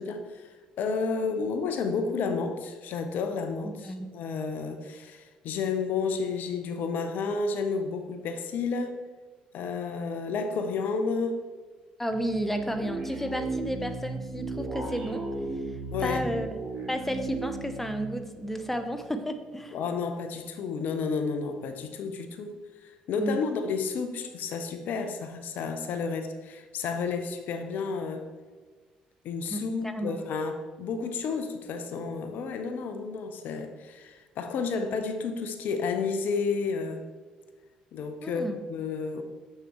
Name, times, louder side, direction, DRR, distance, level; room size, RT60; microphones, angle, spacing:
voice 1, 0.0-9.0 9.5-11.4 15.9-16.3 19.7-28.3 29.2-37.0 37.9-39.2, left 4 dB, 60° left, 7 dB, 0.6 m, -31 dB
voice 2, 3.6-4.1 12.0-15.2 16.0-16.5 16.9-19.8 23.2-23.4 29.5-30.2 38.2-38.6, equal, 5° left, 7 dB, 0.7 m, -32 dB
sound 1, 12.1-19.3, right 3 dB, 35° right, 1.9 m, -35 dB
6.6 x 6.5 x 3.1 m, 1.4 s
hypercardioid pair, 50°, 4 cm